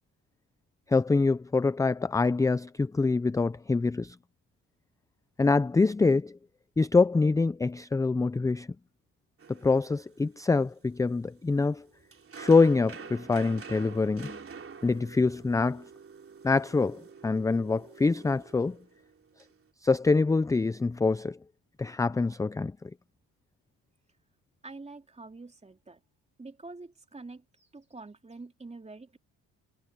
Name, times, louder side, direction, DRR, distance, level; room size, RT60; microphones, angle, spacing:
voice 1, 0.9-4.2 5.4-6.4 6.8-8.7 9.5-11.8 12.4-14.4 14.8-15.8 16.4-18.8 19.8-21.4 21.8-22.7, left 3 dB, 10° left, 0.3 m, -25 dB
sound 1, 9.4-19.6, right 5 dB, 35° right, 3.5 m, -48 dB
voice 2, 24.6-26.0 26.4-29.2, right 3 dB, 20° right, 2.9 m, -46 dB
cardioid pair, 100°, 36 cm